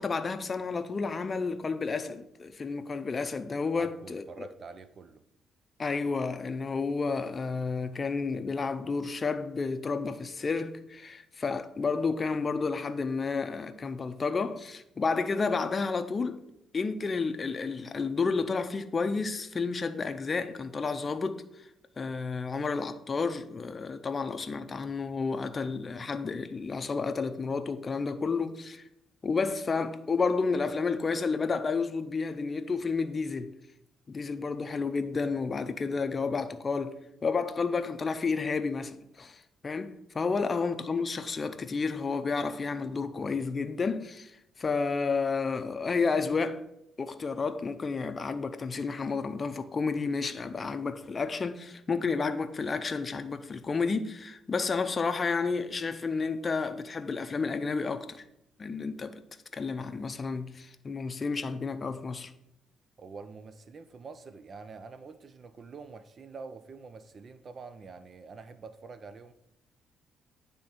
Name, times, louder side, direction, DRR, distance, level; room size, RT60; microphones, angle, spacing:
voice 1, 0.0-4.5 5.8-16.4 16.7-21.7 22.0-28.8 29.2-33.5 34.1-46.6 47.0-58.2 58.6-59.1 59.5-62.3, left 4 dB, 35° left, 0.5 m, -31 dB
voice 2, 3.7-5.2 63.0-69.3, right 4 dB, 45° right, 0.4 m, -46 dB
9.3 x 3.5 x 4.3 m
cardioid pair, 90°, 0 cm